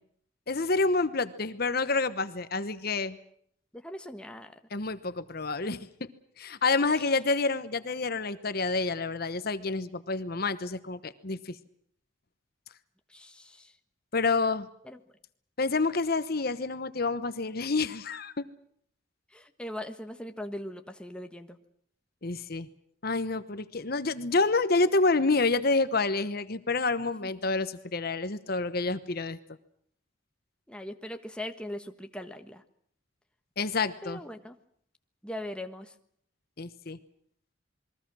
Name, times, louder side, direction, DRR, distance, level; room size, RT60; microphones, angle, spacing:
voice 1, 0.5-3.2 4.7-5.8 6.4-11.6 14.1-14.7 15.6-18.3 22.2-22.7 23.0-29.4 33.6-34.2 36.6-37.0, left 3 dB, 50° left, 12 dB, 1.1 m, -28 dB
voice 2, 3.7-4.6 13.1-13.8 14.8-15.0 19.3-21.6 27.0-27.5 30.7-32.6 34.0-34.6 35.2-35.9, left 1 dB, 5° left, 6 dB, 1.3 m, -40 dB
28.0 x 22.0 x 6.3 m, 0.66 s
head